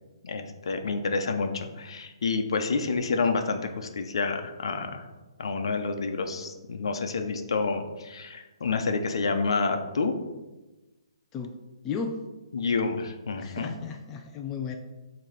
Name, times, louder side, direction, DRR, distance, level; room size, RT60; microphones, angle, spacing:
voice 1, 0.2-5.1 5.4-10.1 12.5-13.7, left 4 dB, 65° left, 6 dB, 0.8 m, -29 dB
voice 2, 11.8-12.2 13.4-14.8, left 6 dB, 15° left, 3 dB, 0.4 m, -34 dB
7.4 x 3.0 x 5.1 m, 1.1 s
hypercardioid pair, 160°, 3 cm